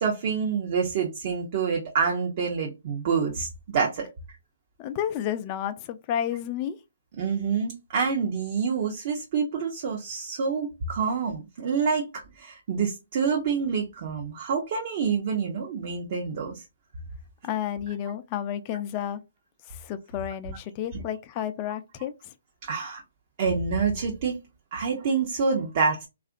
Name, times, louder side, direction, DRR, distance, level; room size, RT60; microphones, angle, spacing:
voice 1, 0.0-3.5 3.7-4.1 7.2-16.6 20.9-21.0 22.6-23.0 23.4-24.4 24.7-26.1, right 5 dB, 45° right, 0.6 m, -27 dB
voice 2, 4.8-6.8 17.4-19.2 19.7-22.3, left 10 dB, 30° left, 0.3 m, -31 dB
2.7 x 2.4 x 2.4 m
hypercardioid pair, 140°, 0 cm